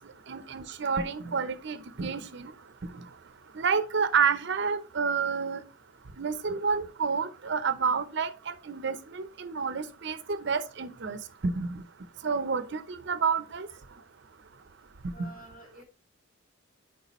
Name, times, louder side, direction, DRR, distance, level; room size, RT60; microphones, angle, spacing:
voice 1, 0.3-2.5 3.6-5.6 6.2-11.2 11.4-11.8 12.2-13.7 15.2-15.3, right 5 dB, 60° right, 0.6 m, -29 dB
voice 2, 15.1-15.8, right 1 dB, 40° left, 2.6 m, -49 dB
8.1 x 4.8 x 3.0 m
head